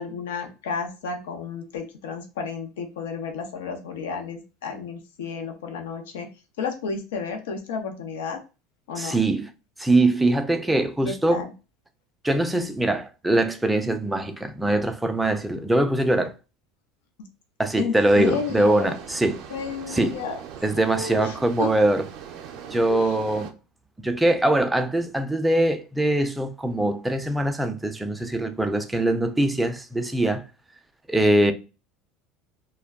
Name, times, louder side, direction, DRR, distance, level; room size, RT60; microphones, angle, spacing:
voice 1, 0.0-6.3 6.6-8.4 8.9-9.2 11.1-11.5 17.8-18.9 19.5-20.4 20.7-21.7 22.9-23.1, left 5 dB, 85° left, 0.6 m, -32 dB
voice 2, 9.0-9.5 9.8-11.4 12.2-16.3 17.6-19.4 19.9-20.2 20.6-22.0 22.7-23.6 24.0-30.5 31.1-31.5, right 1 dB, 5° right, 0.4 m, -22 dB
sound 1, 17.9-23.5, right 8 dB, 60° right, 0.5 m, -40 dB
2.2 x 2.2 x 3.5 m
supercardioid pair, 105°, 0 cm